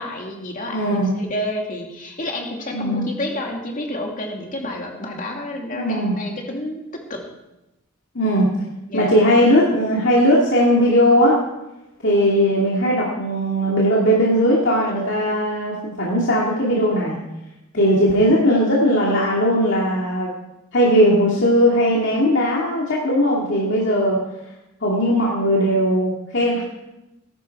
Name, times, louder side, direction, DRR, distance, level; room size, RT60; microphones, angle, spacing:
voice 1, 0.0-7.2 8.9-9.1 17.7-18.0, left 1 dB, 40° left, 1 dB, 2.6 m, -30 dB
voice 2, 0.7-1.1 2.7-3.1 5.7-6.1 8.1-8.5 8.9-11.4 12.0-17.2 17.7-20.3 20.7-24.2 24.8-26.6, equal, 55° left, -4 dB, 2.5 m, -18 dB
18.5 x 11.5 x 4.7 m, 0.96 s
head